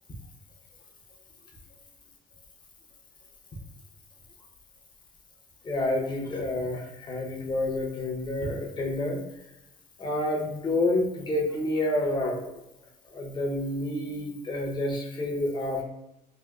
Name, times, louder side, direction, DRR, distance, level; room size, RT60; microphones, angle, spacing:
voice 1, 5.6-9.2 10.0-12.4 13.1-15.8, left 1 dB, 25° left, 0 dB, 0.7 m, -29 dB
3.6 x 2.5 x 2.2 m, 0.90 s
cardioid pair, 110°, 17 cm